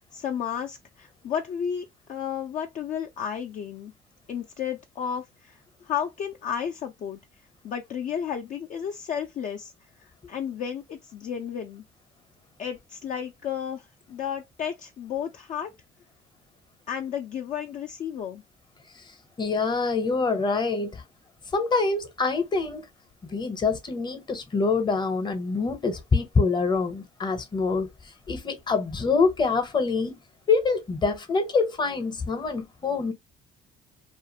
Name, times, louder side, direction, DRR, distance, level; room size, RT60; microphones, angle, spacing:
voice 1, 0.1-3.9 4.3-7.2 7.6-11.8 12.6-15.7 16.9-18.4, left 8 dB, 50° left, 0.4 m, -33 dB
voice 2, 19.4-21.0 21.5-22.8 23.3-27.9 28.3-30.1 30.5-33.1, left 4 dB, 25° left, 0.8 m, -25 dB
2.4 x 2.4 x 2.7 m
cardioid pair, 110°, 17 cm